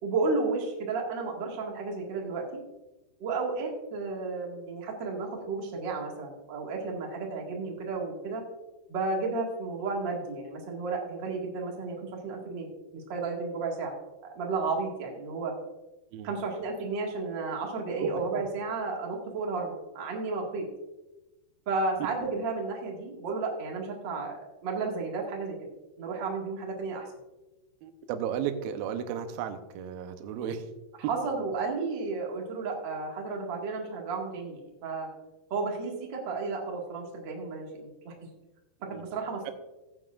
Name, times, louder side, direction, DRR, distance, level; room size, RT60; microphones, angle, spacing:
voice 1, 0.0-2.6 3.2-8.4 8.9-12.7 12.9-13.9 14.2-15.5 16.2-20.6 21.6-25.6 26.0-27.1 31.1-35.1 35.5-38.1 38.8-39.5, right 3 dB, 40° right, -1 dB, 1.7 m, -32 dB
voice 2, 18.0-18.4 27.8-30.7 38.9-39.0 39.5-39.6, right 8 dB, 75° right, 7 dB, 2.3 m, -34 dB
15.0 x 9.4 x 2.5 m, 1.0 s
omnidirectional pair, 4.9 m